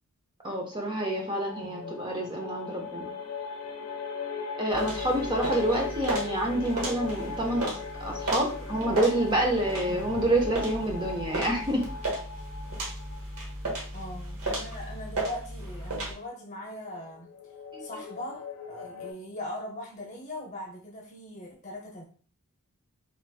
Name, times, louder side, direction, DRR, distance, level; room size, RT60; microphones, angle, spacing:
voice 1, 0.4-3.1 4.6-11.9 17.7-17.8, right 1 dB, 20° right, 1 dB, 0.5 m, -28 dB
sound 1, 0.7-13.9 16.6-19.1, left 5 dB, 90° left, 0.6 m, -39 dB
voice 2, 1.6-2.0 9.8-9.9 13.9-17.3 17.8-22.0, left 1 dB, 30° left, -1 dB, 0.8 m, -40 dB
sound 2, 4.7-16.1, right 2 dB, 75° right, 0.9 m, -35 dB
sound 3, 9.9-14.2, equal, 35° right, 1.2 m, -45 dB
3.1 x 2.9 x 2.2 m, 0.43 s
head